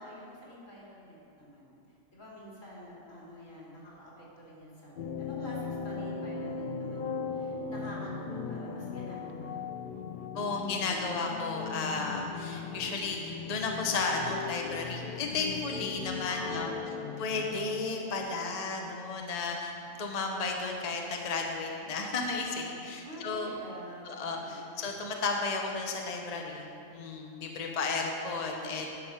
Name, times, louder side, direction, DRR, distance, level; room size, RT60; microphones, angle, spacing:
voice 1, 0.0-1.8 2.1-9.6 16.3-17.5 23.0-24.1 24.4-24.8, equal, 80° left, -6 dB, 3.0 m, -47 dB
sound 1, 5.0-18.0, left 5 dB, 60° left, 0.5 m, -38 dB
voice 2, 10.3-16.7 17.2-23.5 24.1-28.9, left 3 dB, 35° left, 1 dB, 0.8 m, -33 dB
10.0 x 6.5 x 5.7 m, 2.8 s
omnidirectional pair, 1.3 m